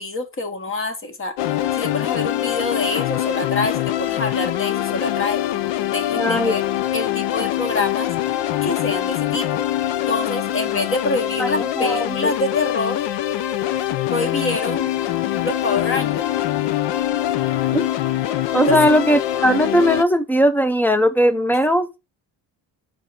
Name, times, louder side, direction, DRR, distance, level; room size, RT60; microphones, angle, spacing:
voice 1, 0.0-1.3 1.7-5.4 5.9-6.6 6.9-8.1 8.6-9.6 10.1-13.0 14.1-14.9 15.4-16.2 18.7-18.8, left 2 dB, 30° left, 1.0 m, -26 dB
sound 1, 1.4-20.0, left 13 dB, 75° left, 0.6 m, -23 dB
voice 2, 6.2-6.5 11.4-12.1 17.7-17.9 18.5-21.9, equal, 5° left, 0.4 m, -18 dB
5.3 x 3.5 x 5.5 m
cardioid pair, 150°, 44 cm